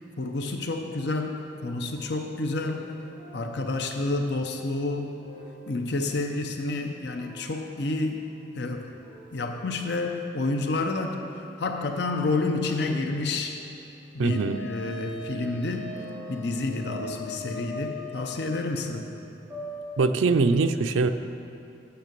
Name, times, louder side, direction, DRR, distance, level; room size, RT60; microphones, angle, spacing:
voice 1, 0.2-2.8 3.3-5.1 5.7-8.2 8.6-8.9 9.3-13.6 14.1-15.9 16.3-19.1, left 2 dB, 60° left, 4 dB, 0.6 m, -29 dB
sound 1, 1.0-6.4 7.1-8.7 9.0-10.3 11.9-15.0 15.9-20.0, equal, 10° right, 2.7 m, -48 dB
voice 2, 14.2-14.6 20.0-21.1, right 4 dB, 90° right, 8 dB, 0.5 m, -22 dB
Wind instrument woodwind instrument, 14.3-18.7, left 2 dB, 80° left, 1.7 m, -40 dB
9.2 x 6.7 x 6.7 m, 2.7 s
head